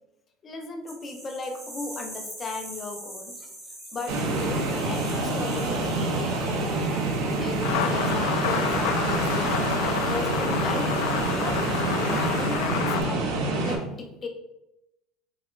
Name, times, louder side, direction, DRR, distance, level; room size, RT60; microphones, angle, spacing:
voice 1, 0.4-3.5 3.9-6.9 7.4-11.0 11.4-11.6 11.9-13.3 13.6-14.3, left 3 dB, 20° left, 3 dB, 0.6 m, -36 dB
sound 1, 0.9-13.2, right 1 dB, 10° right, 1.2 m, -45 dB
sound 2, 4.1-13.8, right 2 dB, 75° right, 0.9 m, -27 dB
sound 3, 7.6-13.0, left 9 dB, 70° left, 0.4 m, -29 dB
5.4 x 4.1 x 2.2 m, 0.92 s
cardioid pair, 170°, 0 cm